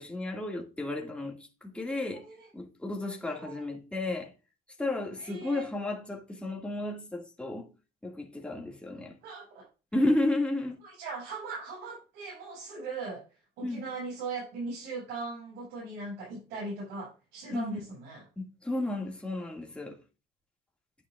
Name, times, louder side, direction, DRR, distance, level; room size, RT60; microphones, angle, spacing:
voice 1, 0.0-2.3 2.5-4.3 4.8-7.7 8.0-9.2 9.9-10.8 13.6-13.9 17.5-17.8 18.4-20.0, left 2 dB, 5° left, 1.9 m, -32 dB
voice 2, 3.2-3.7 5.2-5.6 9.2-9.7 10.8-13.2 13.6-18.2, right 3 dB, 90° right, 5.7 m, -39 dB
10.0 x 9.1 x 2.4 m
cardioid pair, 110°, 17 cm